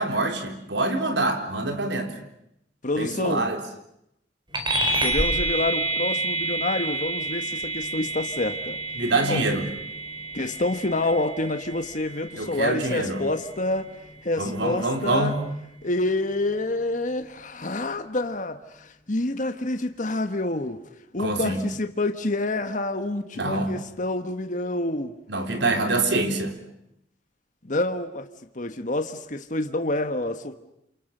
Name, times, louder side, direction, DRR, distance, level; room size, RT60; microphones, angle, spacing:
voice 1, 0.0-2.1 3.0-3.6 8.9-9.6 12.4-13.2 14.4-15.5 21.2-21.6 23.4-23.7 25.3-26.6, right 2 dB, 75° right, 5 dB, 3.8 m, -25 dB
voice 2, 2.8-3.5 5.0-8.8 9.3-9.4 10.3-13.9 14.2-15.3 15.8-20.8 21.1-25.2 27.7-28.3 28.5-30.5, left 2 dB, 45° left, 8 dB, 1.4 m, -27 dB
sound 1, 4.5-14.4, right 2 dB, 25° right, 4.5 m, -29 dB
28.5 x 27.5 x 6.8 m, 0.79 s
head